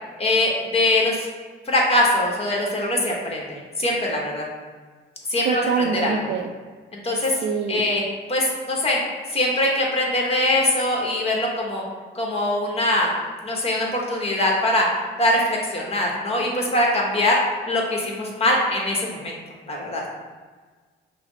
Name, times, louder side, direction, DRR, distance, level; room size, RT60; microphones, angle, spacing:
voice 1, 0.2-1.3 1.7-4.5 5.3-6.2 6.9-7.4 7.7-8.0 8.3-9.0 9.3-11.8 12.1-13.1 13.4-14.9 15.2-19.4 19.7-20.0, left 1 dB, 30° left, -1 dB, 1.1 m, -22 dB
voice 2, 5.5-6.5 7.4-7.9, right 6 dB, 60° right, 6 dB, 0.4 m, -24 dB
5.6 x 2.0 x 3.9 m, 1.5 s
cardioid pair, 90°, 20 cm